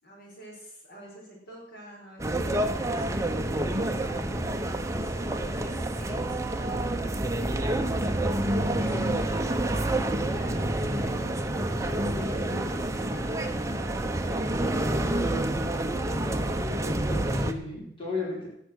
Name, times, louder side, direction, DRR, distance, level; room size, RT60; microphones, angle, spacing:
voice 1, 0.0-4.3 5.0-7.9 8.5-11.3 11.6-14.0, right 1 dB, 55° left, -3 dB, 4.5 m, -47 dB
sound 1, 2.2-17.5, right 1 dB, 15° right, 0.8 m, -28 dB
voice 2, 12.2-12.5 14.9-15.2 16.7-18.5, left 3 dB, 25° left, -6 dB, 5.3 m, -36 dB
17.5 x 6.4 x 6.4 m, 0.75 s
head